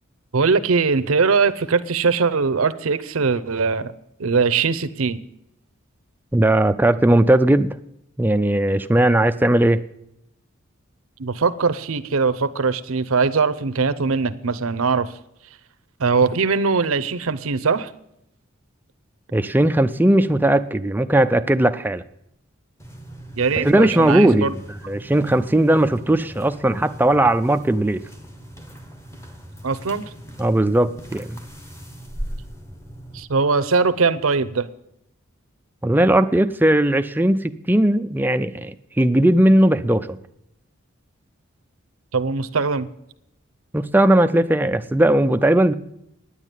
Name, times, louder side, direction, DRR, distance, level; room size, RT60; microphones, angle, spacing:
voice 1, 0.3-3.9 4.2-5.2 11.2-15.1 16.0-17.9 23.4-24.5 29.6-30.0 33.1-34.7 42.1-42.9, right 4 dB, 80° right, 13 dB, 0.7 m, -21 dB
voice 2, 6.3-7.8 8.2-9.8 19.3-22.0 23.6-24.6 24.9-28.0 30.4-31.4 35.8-40.2 43.7-45.7, right 1 dB, 10° right, 10 dB, 0.4 m, -18 dB
sound 1, 22.8-33.2, equal, 15° left, 1.1 m, -39 dB
9.9 x 8.2 x 9.0 m, 0.80 s
head